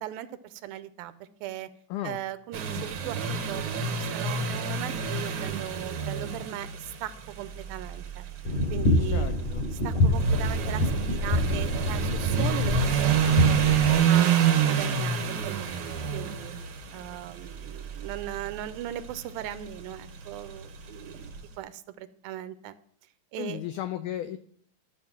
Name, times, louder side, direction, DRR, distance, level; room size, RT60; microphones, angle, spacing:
voice 1, 0.0-1.7 2.0-8.3 8.7-9.4 9.7-13.7 14.1-16.5 16.9-22.8 23.3-23.6, right 12 dB, 85° right, 13 dB, 2.5 m, -38 dB
sound 1, 2.5-21.4, right 7 dB, 65° right, 1.4 m, -29 dB
sound 2, 8.5-13.9, left 1 dB, 55° left, 7.5 m, -26 dB
voice 2, 9.1-9.6 23.4-24.4, left 12 dB, 85° left, 10 dB, 1.8 m, -34 dB
13.5 x 6.0 x 7.3 m, 0.63 s
omnidirectional pair, 4.2 m